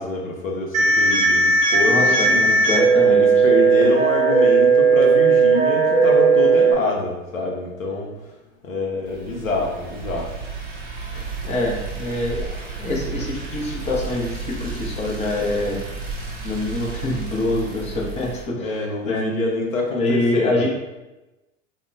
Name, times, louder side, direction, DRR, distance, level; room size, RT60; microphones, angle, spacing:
voice 1, 0.0-2.5 3.1-8.1 8.6-10.3 18.6-20.7, left 2 dB, 90° left, 0 dB, 0.6 m, -26 dB
sound 1, 0.7-6.7, right 4 dB, 85° right, 0.7 m, -16 dB
voice 2, 1.9-3.3 11.1-15.8 16.4-18.8 19.1-19.2 19.9-20.7, left 2 dB, 15° left, -3 dB, 0.5 m, -25 dB
sound 2, 9.0-18.4, right 4 dB, 25° right, 0.5 m, -32 dB
2.1 x 2.1 x 3.7 m, 1.0 s
figure-of-eight pair, 90°, 39 cm